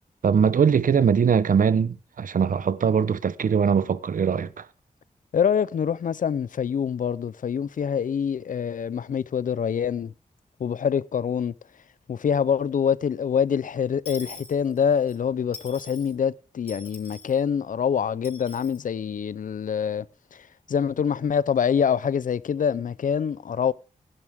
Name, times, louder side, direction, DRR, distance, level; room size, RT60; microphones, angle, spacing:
voice 1, 0.2-4.7, right 7 dB, 75° right, 0.9 m, -21 dB
voice 2, 5.3-10.1 10.6-11.5 12.1-20.1 20.3-23.7, left 7 dB, 70° left, 0.5 m, -25 dB
Dishes pots and pans / Coin (dropping), 14.0-15.2 15.5-16.1 16.7-17.4 18.2-18.8, left 3 dB, 45° left, 4.4 m, -43 dB
17.0 x 11.0 x 3.6 m
wide cardioid pair, 145°, 14 cm